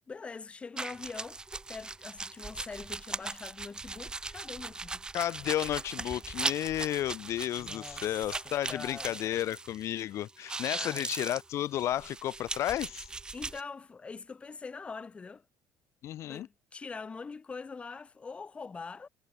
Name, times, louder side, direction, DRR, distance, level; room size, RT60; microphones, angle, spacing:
voice 1, 0.1-1.4 1.7-5.1 7.6-9.2 10.7-11.1 13.3-15.5 16.3-19.1, left 4 dB, 20° left, 1.7 m, -43 dB
wetter rag rub, 0.8-10.0 10.3-13.6, right 3 dB, 15° right, 0.9 m, -39 dB
voice 2, 5.1-13.1 16.0-16.5, left 12 dB, 50° left, 1.1 m, -32 dB
cardioid pair, 155°, 6 cm